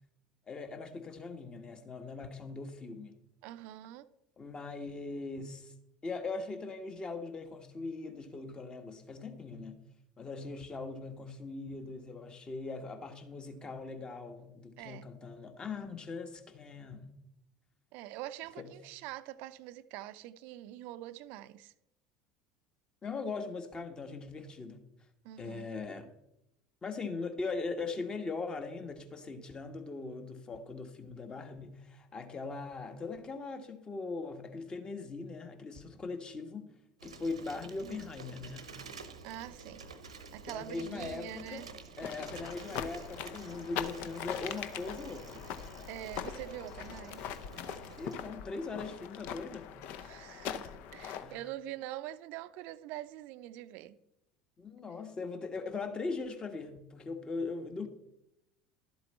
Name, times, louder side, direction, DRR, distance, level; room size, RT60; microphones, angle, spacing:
voice 1, 0.5-3.1 4.4-5.7 6.0-9.8 10.2-17.1 18.6-18.7 23.0-24.8 25.4-26.1 26.8-36.7 37.0-38.7 40.5-41.7 42.0-45.5 48.0-49.8 51.2-51.4 54.6-57.9, left 3 dB, 25° left, 1.5 m, -40 dB
voice 2, 3.4-4.1 14.8-15.0 17.9-21.7 25.2-25.7 37.8-38.1 39.2-39.8 40.3-41.7 42.0-42.1 45.9-47.2 50.0-54.0, right 14 dB, 60° right, 0.5 m, -44 dB
Bicycle, 37.0-48.2, right 4 dB, 85° right, 0.9 m, -50 dB
sound 1, 42.0-51.4, left 9 dB, 60° left, 0.7 m, -42 dB
12.0 x 7.8 x 4.2 m
hypercardioid pair, 70°, 3 cm